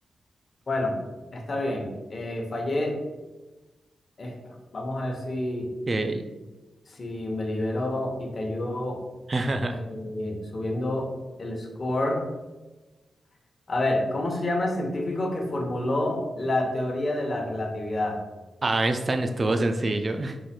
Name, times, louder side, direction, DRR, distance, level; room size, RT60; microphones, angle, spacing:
voice 1, 0.7-1.0 1.3-3.0 4.2-5.7 6.8-9.0 9.7-11.1 11.4-12.2 13.7-18.2, left 1 dB, 35° left, 1 dB, 0.9 m, -28 dB
voice 2, 5.9-6.2 9.3-9.7 18.6-20.4, right 2 dB, 30° right, 6 dB, 0.3 m, -25 dB
4.7 x 2.4 x 4.2 m, 1.1 s
wide cardioid pair, 140°, 0 cm